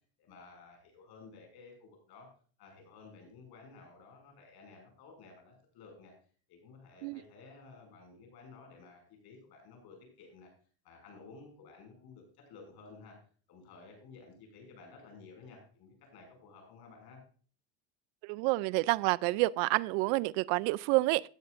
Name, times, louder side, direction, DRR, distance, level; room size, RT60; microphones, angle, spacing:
voice 1, 0.2-2.3 2.6-6.1 6.5-10.5 10.8-13.2 13.5-17.2, left 4 dB, 55° left, 6.2 m, -54 dB
voice 2, 18.2-21.2, right 22 dB, 65° right, 0.5 m, -28 dB
16.5 x 9.5 x 2.5 m
supercardioid pair, 115°, 45 cm